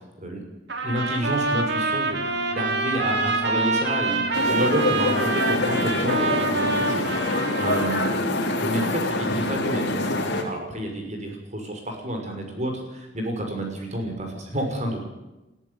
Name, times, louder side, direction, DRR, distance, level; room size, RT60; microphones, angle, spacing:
Trumpet, 0.7-8.2, right 3 dB, 60° right, 3.3 m, -26 dB
voice 1, 0.8-8.1 8.6-15.0, right 1 dB, 35° right, 3 dB, 6.0 m, -30 dB
sound 1, 2.0-6.5, equal, 20° left, 3.9 m, -35 dB
sound 2, 4.3-10.4, left 2 dB, 60° left, 3.5 m, -25 dB
21.5 x 13.5 x 9.7 m, 1.0 s
head